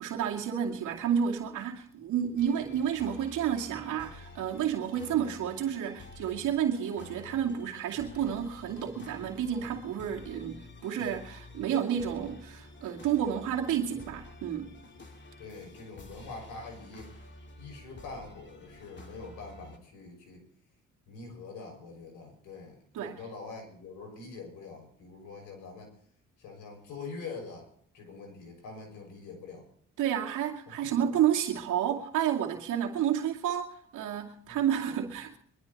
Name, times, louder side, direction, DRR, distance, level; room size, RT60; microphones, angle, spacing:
voice 1, 0.0-14.8 22.9-23.2 30.0-35.4, right 9 dB, 85° right, 2.4 m, -30 dB
sound 1, 2.4-19.8, left 2 dB, 40° left, 2.6 m, -50 dB
voice 2, 15.4-17.1 17.6-20.5 21.1-25.9 26.4-27.7 27.9-29.6 30.7-31.0 34.5-34.6, left 4 dB, 90° left, 6.2 m, -44 dB
22.5 x 12.5 x 4.2 m
cardioid pair, 90°, 30 cm